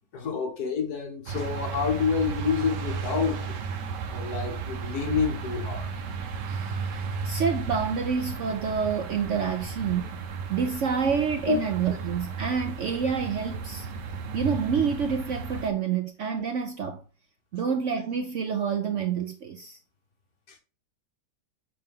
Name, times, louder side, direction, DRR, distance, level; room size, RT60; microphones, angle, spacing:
voice 1, 0.1-3.6 4.1-6.0 11.5-11.6 20.5-20.6, left 5 dB, 65° left, 1.8 m, -28 dB
sound 1, 1.3-15.7, right 5 dB, 80° right, 1.5 m, -34 dB
voice 2, 7.2-13.9 14.3-17.0 17.5-19.8, right 6 dB, 60° right, 0.8 m, -28 dB
6.1 x 4.7 x 3.6 m
omnidirectional pair, 1.8 m